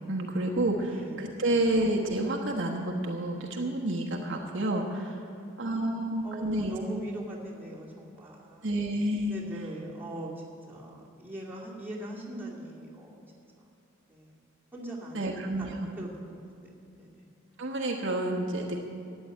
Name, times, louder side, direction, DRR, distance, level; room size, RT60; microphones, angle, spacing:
voice 1, 0.1-5.2 5.6-6.7 8.6-9.4 15.1-15.9 17.6-18.8, right 1 dB, 65° right, 0 dB, 1.2 m, -29 dB
voice 2, 0.8-1.3 5.1-8.7 9.3-13.2 14.1-14.4 14.7-15.3 15.6-17.3, right 1 dB, 10° right, -5 dB, 2.5 m, -42 dB
13.5 x 8.5 x 9.4 m, 2.5 s
head